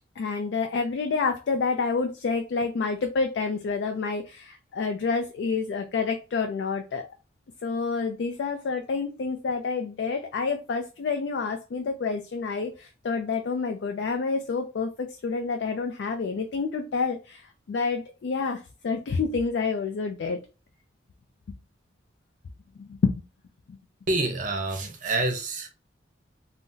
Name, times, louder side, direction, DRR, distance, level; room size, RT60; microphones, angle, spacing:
voice 1, 0.2-7.1 7.6-20.4 21.5-21.6 22.8-23.0 23.7-23.8, left 4 dB, 65° left, 0.3 m, -28 dB
voice 2, 24.1-25.7, right 2 dB, 45° right, 0.6 m, -27 dB
3.8 x 2.0 x 2.6 m
head